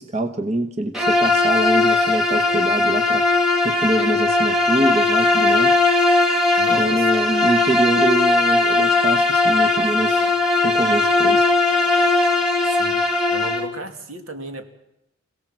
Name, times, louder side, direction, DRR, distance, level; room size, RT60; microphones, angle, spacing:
voice 1, 0.0-3.2 3.6-5.8 6.7-10.3 10.6-11.5, right 2 dB, 35° right, 6 dB, 1.1 m, -24 dB
Bowed string instrument, 0.9-13.7, left 2 dB, 5° right, 1.9 m, -18 dB
voice 2, 6.6-7.4 12.8-14.6, right 2 dB, 75° right, 6 dB, 2.5 m, -35 dB
27.0 x 17.0 x 7.5 m, 0.88 s
head